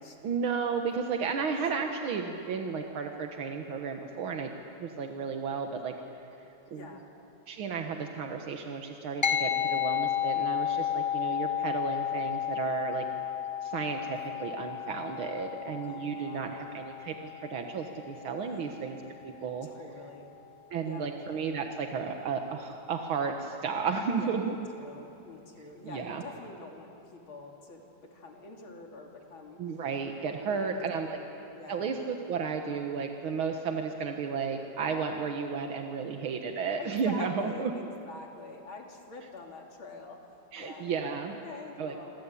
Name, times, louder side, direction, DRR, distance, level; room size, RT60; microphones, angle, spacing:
voice 1, 0.2-4.5 4.8-5.9 6.7-6.9 7.5-13.0 13.6-19.0 19.2-19.7 20.7-24.5 25.8-26.2 29.6-31.2 31.7-37.7 40.5-41.3 41.8-42.1, right 5 dB, 85° right, 4 dB, 2.1 m, -33 dB
voice 2, 6.7-7.1 15.8-16.7 18.4-18.8 19.6-20.3 20.8-21.0 24.1-29.8 30.5-31.9 36.8-42.1, left 3 dB, 80° left, 1 dB, 3.7 m, -46 dB
sound 1, 9.2-18.9, left 10 dB, 20° left, 0.8 m, -33 dB
26.5 x 26.0 x 8.4 m, 2.9 s
omnidirectional pair, 2.2 m